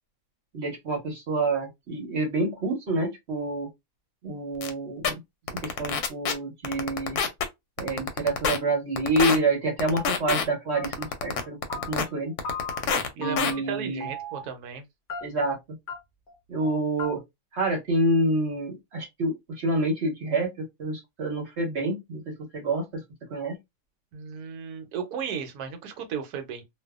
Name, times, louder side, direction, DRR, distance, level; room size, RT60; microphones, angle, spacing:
voice 1, 0.5-3.7 4.2-5.2 5.6-7.2 7.8-11.6 11.9-12.3 13.1-14.1 15.2-15.6 16.5-17.2 17.5-23.0 23.3-23.6, right 2 dB, 50° right, 0.9 m, -27 dB
sound 1, 4.6-4.7 5.0-5.1 5.5-6.3 6.6-7.4 7.8-8.6 9.0-9.4 9.8-10.4 10.8-12.0 12.4-13.1 13.4-13.5, left 6 dB, 70° left, 1.0 m, -25 dB
sound 2, 10.7-11.1 11.3-12.2 12.4-13.0 13.2-13.8 14.0-14.5 15.1-15.6 15.9-16.0 16.3-16.4 16.6-16.7 17.0-17.1, left 3 dB, 50° left, 0.6 m, -36 dB
voice 2, 13.2-14.8 24.1-26.6, right 7 dB, 70° right, 1.1 m, -35 dB
2.5 x 2.3 x 2.3 m
omnidirectional pair, 1.8 m